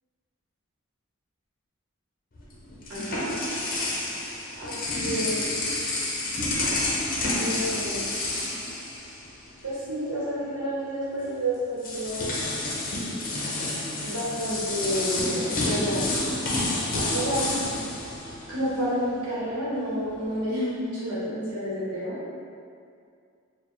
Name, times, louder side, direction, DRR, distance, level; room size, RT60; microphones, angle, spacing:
sound 1, 2.4-9.6 9.9-10.1 11.2-11.3 11.8-18.9, left 2 dB, 40° left, 0.6 m, -29 dB
voice 1, 2.9-3.3 4.6-5.4 7.3-8.1 9.6-12.2 14.0-16.1 17.1-17.5 18.5-22.2, equal, 90° right, -9 dB, 0.9 m, -30 dB
4.3 x 2.1 x 3.0 m, 2.3 s
head